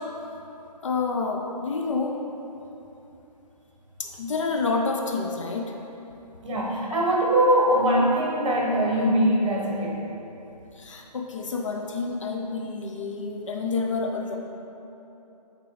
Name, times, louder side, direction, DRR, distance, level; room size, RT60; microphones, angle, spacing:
voice 1, 0.8-2.2 4.0-5.7 10.8-14.4, left 4 dB, 45° left, 1 dB, 0.6 m, -28 dB
voice 2, 6.4-10.0, right 1 dB, 50° right, -3 dB, 1.4 m, -22 dB
9.1 x 3.7 x 3.2 m, 3.0 s
hypercardioid pair, 160°, 21 cm